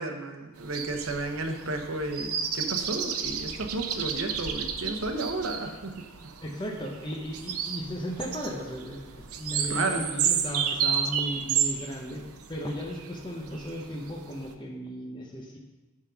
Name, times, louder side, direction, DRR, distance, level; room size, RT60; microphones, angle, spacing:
voice 1, 0.0-5.9 9.7-10.0, right 2 dB, 60° right, 4 dB, 0.9 m, -32 dB
sound 1, 0.6-14.5, right 8 dB, 80° right, 0.7 m, -32 dB
voice 2, 6.4-12.2 12.5-15.6, equal, 20° left, -1 dB, 0.8 m, -35 dB
10.5 x 3.8 x 5.7 m, 1.1 s
head